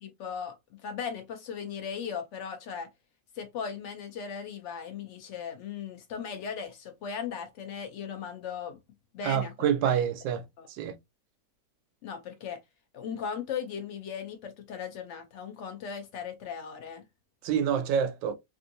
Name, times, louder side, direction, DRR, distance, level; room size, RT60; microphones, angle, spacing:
voice 1, 0.0-2.9 3.3-8.8 9.1-9.5 9.8-10.0 10.6-10.7 12.0-12.6 12.9-17.0, left 7 dB, 85° left, 0.6 m, -37 dB
voice 2, 9.2-10.4 10.7-10.9 17.4-18.3, right 8 dB, 90° right, 1.3 m, -27 dB
3.5 x 2.6 x 2.5 m
omnidirectional pair, 1.9 m